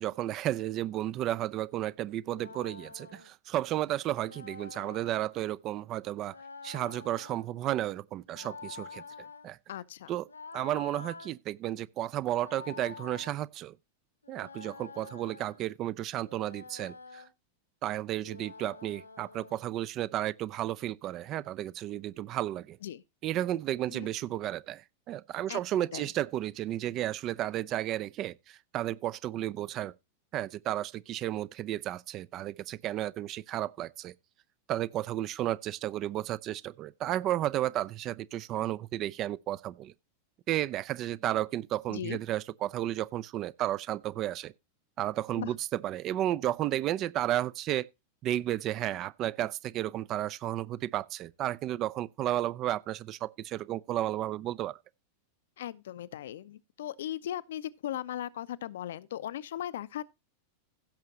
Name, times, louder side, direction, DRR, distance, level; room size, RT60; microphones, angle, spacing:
voice 1, 0.0-6.3 6.6-9.0 9.4-9.6 10.1-10.2 10.5-13.8 14.3-17.2 17.8-22.8 23.2-29.9 30.3-34.1 34.7-39.9 40.5-44.5 45.0-45.6 45.8-47.9 48.2-54.7, right 13 dB, 35° right, 0.5 m, -33 dB
sound 1, 2.2-3.3 4.2-5.2 6.2-7.5 8.2-9.5 10.3-11.3 12.2-13.4 14.2-15.6 16.2-17.3 18.2-19.6, left 4 dB, 75° left, 1.1 m, -47 dB
voice 2, 9.7-10.1 22.8-23.0 23.9-24.1 25.5-26.1 41.9-42.2 45.4-45.5 55.6-60.0, left 11 dB, 60° left, 0.6 m, -38 dB
16.0 x 6.6 x 2.8 m
figure-of-eight pair, 90°, 0 cm